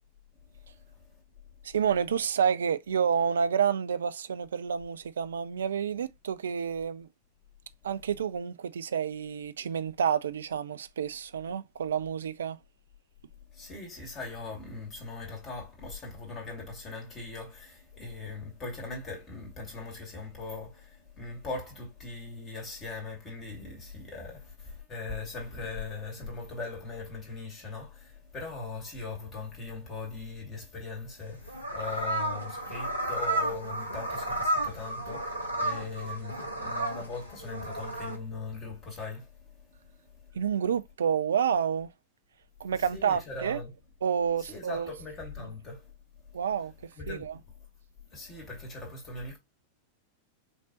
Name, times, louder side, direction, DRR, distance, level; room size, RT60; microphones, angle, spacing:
voice 1, 0.6-1.2 13.5-40.4 42.6-43.7 44.4-45.9 46.3-46.4 47.0-47.5 48.1-49.4, left 3 dB, 25° left, 2.6 m, -40 dB
voice 2, 1.6-7.1 7.8-12.6 40.3-41.9 42.6-43.6 44.0-44.9 45.4-45.5 46.3-46.7 47.1-47.3, right 7 dB, 65° right, 0.4 m, -29 dB
sound 1, 31.2-38.2, right 1 dB, 90° right, 1.2 m, -32 dB
5.3 x 3.3 x 2.9 m
figure-of-eight pair, 90°, 0 cm